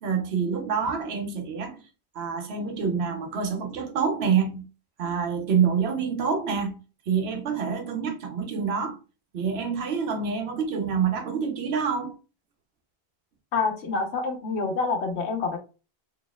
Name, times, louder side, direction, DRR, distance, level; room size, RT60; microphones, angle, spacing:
voice 1, 0.0-1.8 2.1-4.7 5.0-6.8 7.1-9.0 9.3-12.2, right 6 dB, 75° right, 0.9 m, -27 dB
voice 2, 13.5-15.6, left 4 dB, 90° left, 1.1 m, -27 dB
4.1 x 2.9 x 2.2 m
omnidirectional pair, 1.1 m